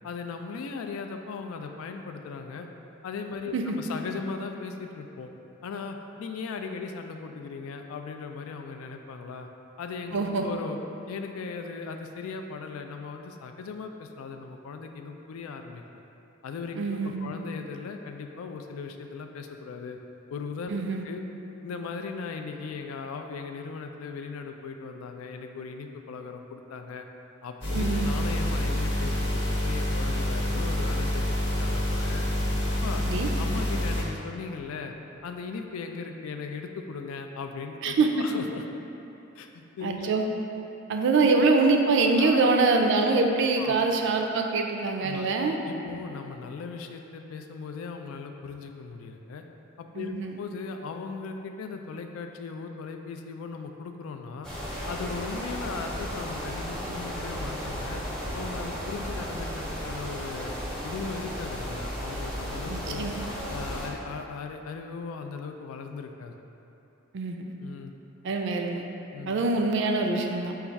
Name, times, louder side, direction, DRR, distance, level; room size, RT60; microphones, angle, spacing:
voice 1, 0.0-2.7 3.0-5.3 5.6-9.5 9.8-10.8 11.1-15.8 16.4-20.0 20.3-21.2 21.6-27.0 27.4-29.2 29.6-32.2 32.8-33.1 33.4-34.9 35.2-38.6 39.4-40.1 42.2-42.4 43.6-43.7 45.0-45.2 45.7-49.4 49.8-54.5 54.9-58.0 58.3-60.5 60.8-63.1 63.5-66.4 67.6-67.9 69.1-69.3, left 5 dB, 85° left, 5 dB, 0.3 m, -38 dB
voice 2, 10.1-10.4 16.7-17.3 20.7-21.0 27.7-28.0 33.0-33.3 37.8-38.1 39.8-40.2 40.9-45.6 49.9-50.4 62.7-63.2 67.1-67.5 68.2-68.8 69.3-70.6, right 3 dB, 60° right, 3 dB, 0.4 m, -24 dB
sound 1, 27.6-34.0, left 1 dB, 55° left, 0.8 m, -27 dB
sound 2, 54.4-63.9, equal, 5° left, 0.7 m, -34 dB
4.0 x 2.4 x 4.5 m, 3.0 s
head